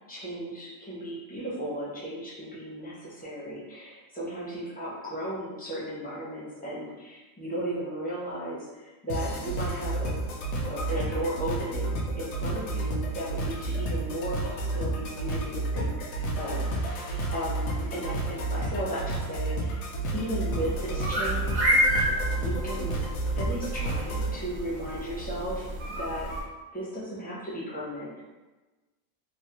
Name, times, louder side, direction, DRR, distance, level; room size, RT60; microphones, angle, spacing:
voice 1, 0.1-10.2 10.7-19.9 20.1-21.8 22.4-23.0 23.4-25.7 26.0-26.3 26.7-28.2, right 1 dB, 15° left, -7 dB, 0.4 m, -35 dB
sound 1, 9.1-24.3, right 2 dB, 75° left, 0.9 m, -31 dB
sound 2, 20.5-26.4, equal, 70° right, 1.2 m, -30 dB
3.1 x 2.0 x 2.8 m, 1.2 s
omnidirectional pair, 1.5 m